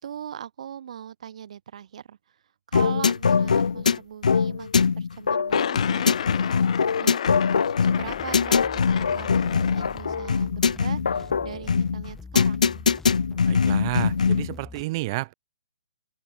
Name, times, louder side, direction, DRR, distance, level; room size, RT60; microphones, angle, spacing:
voice 1, 0.0-2.4 2.7-6.5 7.0-7.2 7.8-12.7, right 9 dB, 60° right, 1.9 m, -40 dB
sound 1, 2.7-14.5, left 5 dB, 85° left, 0.7 m, -22 dB
sound 2, 5.5-10.5, left 9 dB, 60° left, 1.0 m, -32 dB
sound 3, 7.9-14.8, left 4 dB, 5° left, 1.6 m, -43 dB
voice 2, 13.5-15.3, right 21 dB, 35° right, 0.3 m, -30 dB
open air
hypercardioid pair, 140°, 4 cm